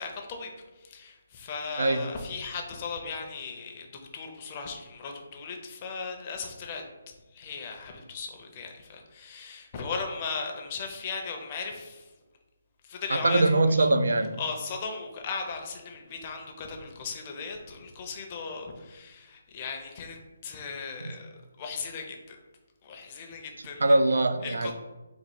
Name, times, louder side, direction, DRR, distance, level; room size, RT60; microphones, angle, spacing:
voice 1, 0.0-3.9 4.1-6.8 7.3-12.1 12.8-13.9 14.4-21.3 21.6-22.4 22.8-23.8 24.4-24.7, left 5 dB, 20° left, 3 dB, 0.5 m, -37 dB
voice 2, 13.1-14.4 23.8-24.7, right 2 dB, 90° right, 10 dB, 0.4 m, -22 dB
3.9 x 2.3 x 4.6 m, 1.2 s
hypercardioid pair, 175°, 0 cm